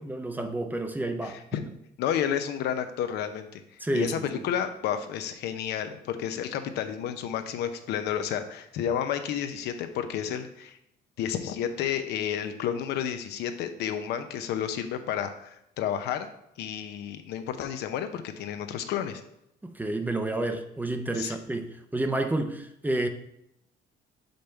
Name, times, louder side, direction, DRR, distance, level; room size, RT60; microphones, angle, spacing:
voice 1, 0.0-1.4 3.8-4.3 19.6-23.1, right 2 dB, 10° right, 7 dB, 0.6 m, -30 dB
voice 2, 1.2-1.6 2.0-3.6 3.9-10.8 11.2-16.3 16.6-19.2 21.2-21.4, left 9 dB, 80° left, 8 dB, 0.7 m, -31 dB
5.3 x 5.3 x 4.4 m, 0.78 s
cardioid pair, 110°, 17 cm